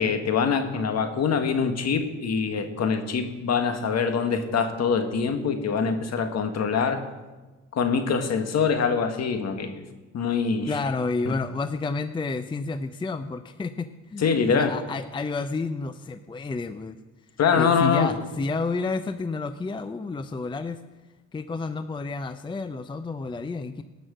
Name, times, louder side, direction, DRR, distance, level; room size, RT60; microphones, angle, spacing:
voice 1, 0.0-7.0 7.7-9.8 10.1-10.8 11.2-11.4 14.2-14.7 17.4-18.1, left 6 dB, 55° left, 6 dB, 1.6 m, -24 dB
voice 2, 10.7-17.0 17.6-20.8 21.3-23.8, left 3 dB, 15° left, 10 dB, 0.5 m, -30 dB
18.5 x 6.2 x 6.2 m, 1.2 s
supercardioid pair, 80°, 32 cm